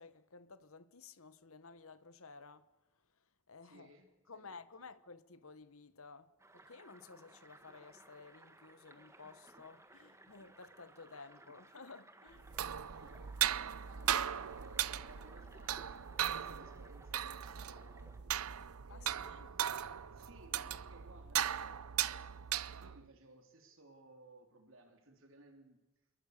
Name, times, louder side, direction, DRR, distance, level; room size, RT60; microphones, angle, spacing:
voice 1, 0.0-2.6 3.5-3.9 4.3-12.4 18.9-19.6, left 4 dB, 75° left, 1.4 m, -54 dB
voice 2, 3.6-4.5 4.8-4.9 11.5-11.6 12.9-13.1 13.6-15.9 16.3-19.3 20.1-21.9 22.8-25.8, right 2 dB, 65° right, 3.8 m, -60 dB
sound 1, 6.4-18.2, right 2 dB, 15° right, 1.6 m, -60 dB
banging pipes, 12.4-23.1, right 10 dB, 85° right, 0.7 m, -38 dB
27.0 x 22.5 x 6.8 m
head